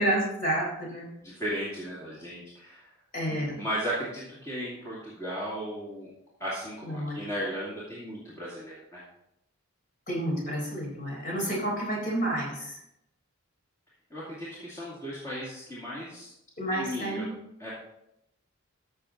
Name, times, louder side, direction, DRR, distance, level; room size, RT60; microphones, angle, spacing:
voice 1, 0.0-1.1 3.1-3.6 6.8-7.2 10.1-12.8 16.6-17.3, right 1 dB, 40° left, -2 dB, 4.2 m, -30 dB
voice 2, 1.2-2.9 3.3-6.1 6.4-9.0 14.1-16.3 16.7-17.3 17.6-17.7, equal, 15° left, -8 dB, 2.3 m, -36 dB
14.0 x 6.4 x 3.9 m, 0.82 s
head